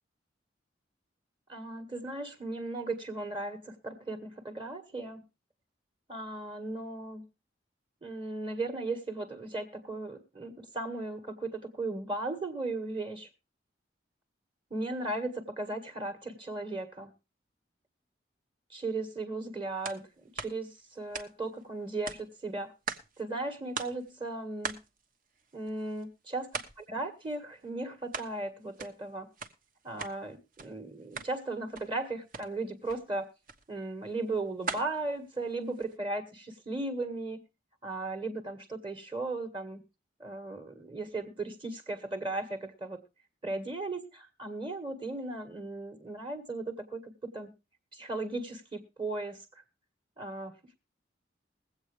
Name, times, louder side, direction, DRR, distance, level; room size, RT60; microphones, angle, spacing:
voice 1, 1.5-5.2 6.1-7.2 8.0-13.3 14.7-17.1 18.7-22.7 23.2-24.8 25.5-26.5 26.8-29.3 29.8-33.3 33.7-37.4 37.8-39.8 40.2-43.0 43.4-47.5 47.9-49.4 50.2-50.7, right 2 dB, 30° right, 6 dB, 1.6 m, -36 dB
sound 1, 19.8-20.0 20.4-21.6 22.0-23.2 23.5-23.6 23.8-24.1 24.6-26.0 26.5-26.9 27.2-28.3 28.6-30.2 30.5-30.7 31.0-31.4 31.7-32.0 32.3-32.5 32.8-33.0 33.5-33.6 34.1-36.0, right 4 dB, 50° right, 1.2 m, -41 dB
21.5 x 8.1 x 3.2 m, 0.28 s
head